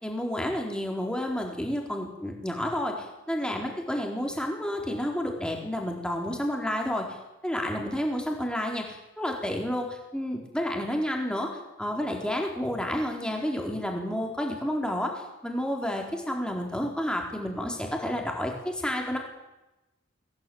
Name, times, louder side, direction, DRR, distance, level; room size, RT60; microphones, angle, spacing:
voice 1, 0.0-7.2 7.4-11.5 11.8-19.2, equal, 5° left, 1 dB, 4.1 m, -30 dB
23.5 x 17.0 x 9.5 m, 1.0 s
head